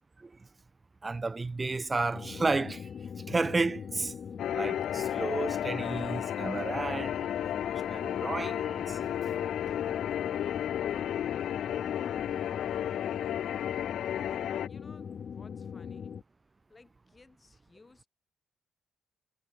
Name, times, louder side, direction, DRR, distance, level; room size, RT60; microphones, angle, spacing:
voice 1, 1.0-2.9 3.3-4.1 4.5-9.0, right 3 dB, 25° right, 0.5 m, -32 dB
sound 1, 2.1-16.2, left 7 dB, 50° left, 2.2 m, -41 dB
sound 2, 4.4-14.7, left 11 dB, 70° left, 1.2 m, -33 dB
voice 2, 13.8-16.2 16.7-18.1, left 3 dB, 25° left, 7.6 m, -59 dB
cardioid pair, 90°, 0 cm